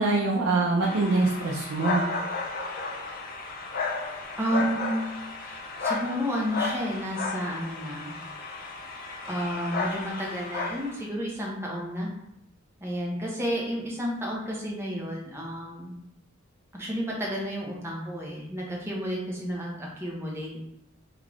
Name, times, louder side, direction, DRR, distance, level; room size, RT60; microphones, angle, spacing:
voice 1, 0.0-2.1, right 3 dB, 70° right, -3 dB, 0.5 m, -24 dB
sound 1, 0.8-11.1, left 3 dB, 45° left, 0.4 m, -33 dB
voice 2, 4.4-5.1 5.4-8.1 9.3-12.1 12.8-15.9 16.7-20.6, equal, 10° right, -3 dB, 0.8 m, -31 dB
3.6 x 2.5 x 3.4 m, 0.81 s
head